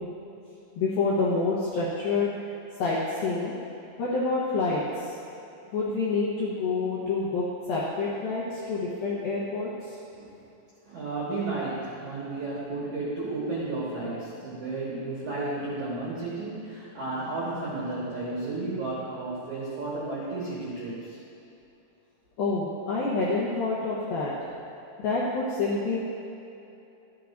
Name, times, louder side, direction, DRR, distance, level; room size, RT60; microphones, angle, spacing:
voice 1, 0.8-2.3 2.8-3.5 4.0-5.1 5.7-10.0 22.4-24.3 25.0-26.0, left 3 dB, 75° left, -7 dB, 2.1 m, -27 dB
voice 2, 10.8-21.2, right 2 dB, 70° right, -8 dB, 1.8 m, -33 dB
13.5 x 9.2 x 2.5 m, 2.8 s
omnidirectional pair, 5.6 m